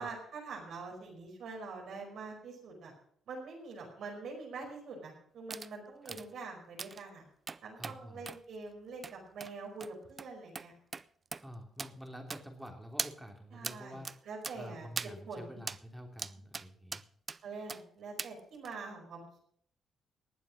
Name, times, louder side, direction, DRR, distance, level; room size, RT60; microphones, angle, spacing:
voice 1, 0.0-2.9 3.3-7.2 7.6-10.7 13.5-14.9 15.2-15.6 17.4-19.4, right 4 dB, 70° right, 0 dB, 5.1 m, -45 dB
sound 1, 5.5-5.7 6.1-6.3 6.8-7.0 7.5-8.0 8.3-8.4 9.0-9.1 9.4-9.5 9.8-9.9 10.2-10.3 10.6-10.7 10.9-11.0 11.3-11.4 11.8-11.9 12.3-12.7 13.0-13.1 13.6-13.8 14.0-14.2 14.4-14.6 15.0-15.1 15.7-15.8 16.2-16.7 16.9-17.4 17.7-17.8 18.2-18.3 18.6-18.8, right 4 dB, 35° right, 0.5 m, -39 dB
voice 2, 7.8-8.3 11.4-17.0, equal, 5° right, 4 dB, 3.1 m, -48 dB
19.5 x 7.5 x 6.4 m, 0.64 s
cardioid pair, 90°, 0 cm